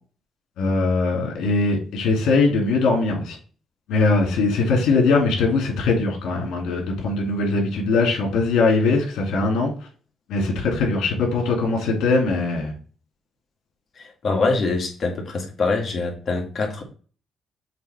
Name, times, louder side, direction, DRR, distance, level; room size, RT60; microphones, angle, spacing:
voice 1, 0.6-3.4 3.9-9.7 10.3-12.7, left 3 dB, 80° left, 0 dB, 2.6 m, -21 dB
voice 2, 14.0-16.8, left 3 dB, 50° left, 1 dB, 2.2 m, -24 dB
7.4 x 3.5 x 4.3 m, 0.39 s
cardioid pair, 90°, 0 cm